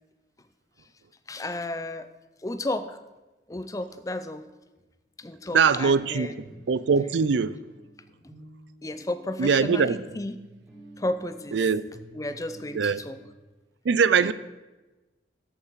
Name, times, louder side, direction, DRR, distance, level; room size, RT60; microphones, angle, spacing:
voice 1, 1.3-2.1 2.4-3.0 3.5-4.5 5.2-6.6 8.8-10.4 11.0-11.6 12.1-13.2 14.2-14.3, left 1 dB, 20° left, 0.5 m, -33 dB
sound 1, 4.8-4.9 5.3-5.4 5.9-6.0 6.5-13.3, right 1 dB, 5° right, 2.2 m, -51 dB
voice 2, 5.5-7.6 9.4-10.1 11.5-11.8 12.7-13.0 13.8-14.3, right 5 dB, 85° right, 0.4 m, -22 dB
13.5 x 5.7 x 4.7 m
head